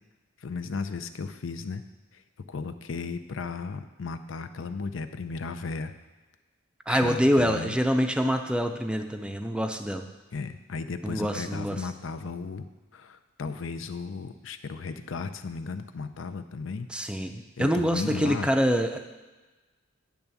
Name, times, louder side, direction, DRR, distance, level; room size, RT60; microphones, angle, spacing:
voice 1, 0.4-1.8 2.1-2.2 2.5-5.9 6.9-7.8 10.3-12.7 12.9-16.9 17.6-18.5, left 4 dB, 80° left, 10 dB, 0.5 m, -35 dB
voice 2, 6.9-10.0 11.0-11.8 16.9-19.0, equal, 5° right, 6 dB, 0.5 m, -25 dB
10.5 x 3.5 x 6.9 m, 1.2 s
head